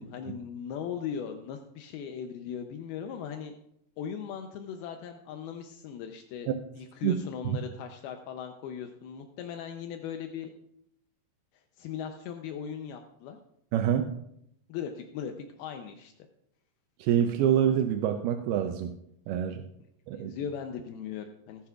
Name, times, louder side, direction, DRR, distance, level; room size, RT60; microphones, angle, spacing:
voice 1, 0.0-3.5 4.0-6.5 6.7-10.5 11.8-13.4 14.7-15.3 15.6-16.1 20.1-21.7, left 8 dB, 80° left, 5 dB, 2.5 m, -38 dB
voice 2, 7.0-7.6 13.7-14.1 17.0-18.9 19.3-19.6 20.1-20.3, right 9 dB, 85° right, 6 dB, 2.5 m, -26 dB
18.0 x 10.0 x 2.4 m, 0.75 s
omnidirectional pair, 4.5 m